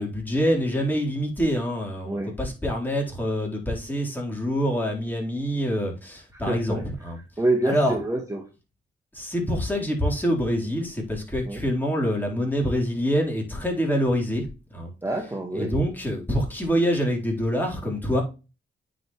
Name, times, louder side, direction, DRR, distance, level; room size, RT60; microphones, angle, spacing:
voice 1, 0.0-7.2 7.6-8.0 9.1-14.5 14.7-14.9 15.5-18.2, equal, 10° left, 3.8 m, -26 dB
voice 2, 6.3-6.8 7.4-8.4 11.5-11.6 15.0-15.7, right 2 dB, 15° right, 1.6 m, -26 dB
8.9 x 5.3 x 3.1 m
cardioid pair, 75°, 21 cm